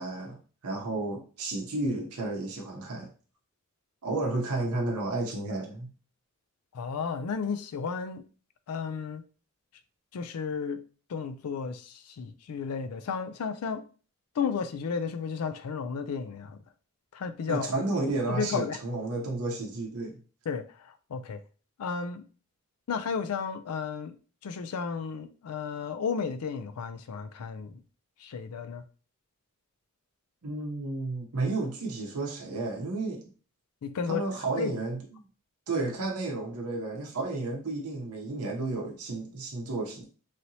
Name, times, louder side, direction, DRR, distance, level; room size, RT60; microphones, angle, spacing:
voice 1, 0.0-3.1 4.0-5.9 17.5-20.2 30.4-33.3 34.1-35.0 35.7-40.1, right 2 dB, 80° right, 0.8 m, -32 dB
voice 2, 6.7-8.2 8.7-9.2 10.1-10.8 11.1-13.8 14.4-16.6 17.1-17.7 18.3-18.8 20.5-21.4 21.8-22.2 22.9-24.2 24.4-27.8 28.2-28.8 33.8-34.2 34.6-34.7, left 6 dB, 85° left, 0.4 m, -33 dB
3.2 x 2.9 x 2.7 m
head